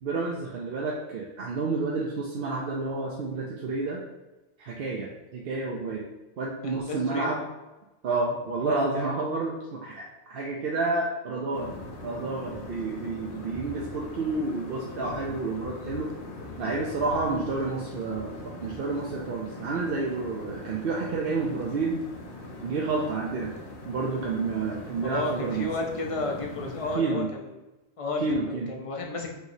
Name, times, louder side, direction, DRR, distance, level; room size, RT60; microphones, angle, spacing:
voice 1, 0.0-4.0 4.6-6.1 6.4-7.4 8.0-11.7 12.0-16.1 16.6-18.3 18.6-22.0 22.6-23.5 23.8-25.7 26.9-27.3 28.2-28.7, right 3 dB, 60° right, -2 dB, 0.8 m, -30 dB
voice 2, 6.6-7.3 25.0-27.6 28.0-29.3, left 2 dB, 35° left, 1 dB, 0.6 m, -32 dB
sound 1, 11.5-27.0, left 2 dB, 85° left, 1.1 m, -41 dB
5.6 x 3.0 x 2.7 m, 1.0 s
omnidirectional pair, 1.1 m